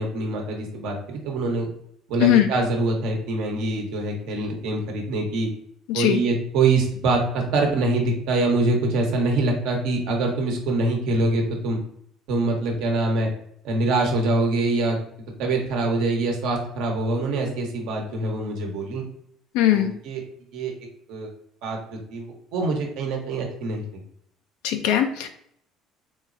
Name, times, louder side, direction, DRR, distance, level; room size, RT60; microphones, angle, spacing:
voice 1, 0.0-1.7 2.1-5.5 5.9-11.8 12.3-13.3 13.6-15.0 15.4-19.0 19.7-20.2 20.5-20.7 21.1-21.3 21.6-24.0, right 2 dB, 75° right, 1 dB, 0.9 m, -24 dB
voice 2, 5.9-6.2 19.5-19.9 24.6-25.3, left 12 dB, 80° left, 5 dB, 0.3 m, -19 dB
3.8 x 3.1 x 2.5 m, 0.69 s
supercardioid pair, 75°, 0 cm